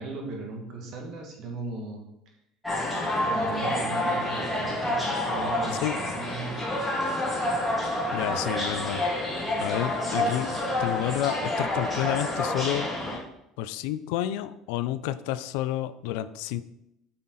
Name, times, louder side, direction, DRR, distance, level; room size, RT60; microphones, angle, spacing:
voice 1, 0.0-2.0 3.3-6.8, right 2 dB, 45° right, 1 dB, 2.2 m, -37 dB
sound 1, 2.6-13.2, left 1 dB, ahead, 2.5 m, -28 dB
voice 2, 8.1-9.0 9.6-10.5 10.8-12.9 13.6-16.6, left 13 dB, 85° left, 13 dB, 0.5 m, -30 dB
8.7 x 5.7 x 4.2 m, 0.83 s
cardioid pair, 160°, 0 cm